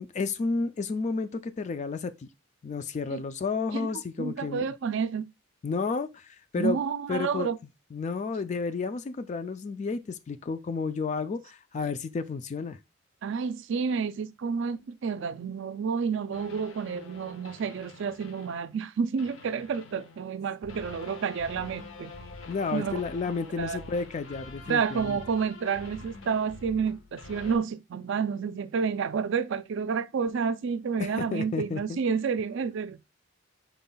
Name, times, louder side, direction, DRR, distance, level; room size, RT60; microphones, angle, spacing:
voice 1, 0.0-2.3 2.6-4.6 5.6-6.8 7.1-7.5 7.9-12.8 22.5-25.2 31.0-32.0, left 4 dB, 35° left, 0.3 m, -31 dB
voice 2, 4.2-5.3 6.6-7.6 13.2-22.1 22.7-23.0 23.6-23.8 24.7-33.0, right 6 dB, 65° right, 0.4 m, -30 dB
sound 1, 16.3-18.8 19.2-27.6, left 3 dB, 75° left, 0.8 m, -46 dB
5.4 x 4.1 x 2.2 m
head